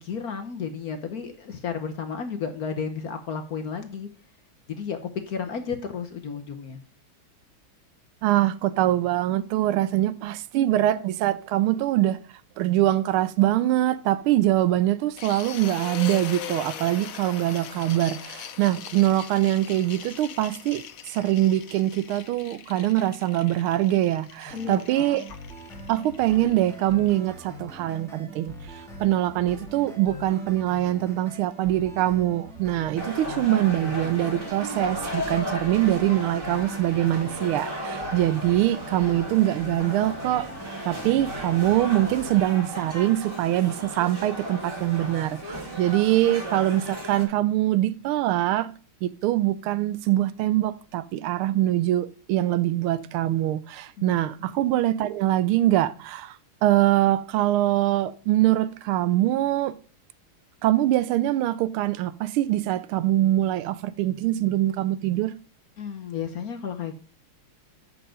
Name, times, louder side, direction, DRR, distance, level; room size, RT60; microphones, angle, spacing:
voice 1, 0.0-4.1 4.7-5.0 5.3-6.8 24.5-25.2 54.0-54.1 54.4-54.5 65.8-66.9, left 6 dB, 55° left, 1.1 m, -33 dB
voice 2, 8.2-12.2 12.6-20.8 21.1-25.2 25.9-40.5 40.8-48.7 49.0-56.4 56.6-59.7 60.6-65.3, right 14 dB, 85° right, 1.5 m, -23 dB
sound 1, 15.2-27.1, left 9 dB, 70° left, 0.8 m, -41 dB
sound 2, 24.4-42.4, right 1 dB, ahead, 1.7 m, -42 dB
sound 3, 33.0-47.3, equal, 25° right, 2.6 m, -35 dB
8.1 x 6.2 x 5.0 m
omnidirectional pair, 2.3 m